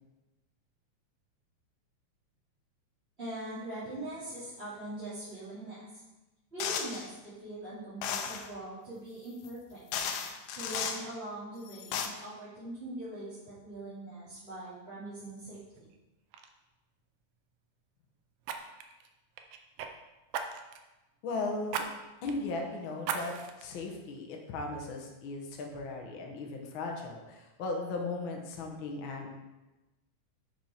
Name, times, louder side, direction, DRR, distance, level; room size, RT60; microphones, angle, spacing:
voice 1, 3.2-5.9 6.5-9.8 10.6-15.9, right 1 dB, 20° right, -14 dB, 2.8 m, -42 dB
sound 1, 6.6-7.1 8.0-8.5 9.5-9.6 9.9-11.0 11.7-12.1, left 7 dB, 80° left, 2.1 m, -34 dB
Fire, 15.7-16.0 16.3-16.5 18.4-19.9 20.3-20.9 21.7-21.9 22.3-22.4 23.0-23.6 24.2-24.3, right 7 dB, 75° right, 1.5 m, -37 dB
voice 2, 21.2-21.9 22.2-29.3, left 3 dB, 60° left, 1 dB, 1.3 m, -37 dB
7.5 x 6.0 x 4.3 m, 1.1 s
omnidirectional pair, 3.4 m